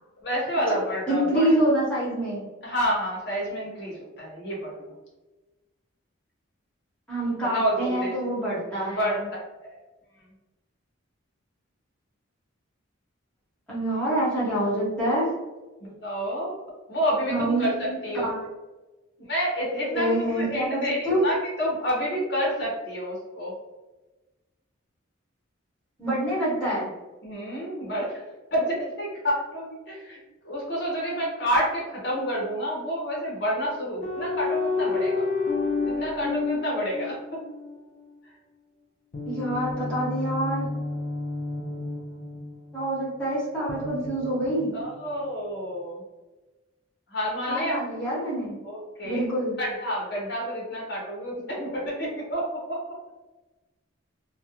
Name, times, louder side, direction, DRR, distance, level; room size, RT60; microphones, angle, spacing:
voice 1, 0.2-1.5 2.6-4.9 7.5-8.1 8.9-9.2 9.6-9.8 15.8-16.5 16.9-18.3 19.3-23.5 27.2-28.1 28.5-30.2 30.4-35.2 35.8-37.2 44.7-46.0 47.1-47.8 48.6-49.3 49.6-52.8, equal, 55° left, -4 dB, 0.7 m, -29 dB
voice 2, 1.1-2.4 7.1-9.3 13.7-15.3 17.3-18.5 19.9-21.2 26.0-26.9 39.3-40.7 42.7-44.7 47.5-48.6 49.0-49.5, right 1 dB, 5° left, -8 dB, 0.8 m, -26 dB
sound 1, 34.0-37.7 39.1-42.9 43.7-44.9, left 3 dB, 35° left, 0.3 m, -30 dB
2.3 x 2.1 x 2.8 m, 1.1 s
head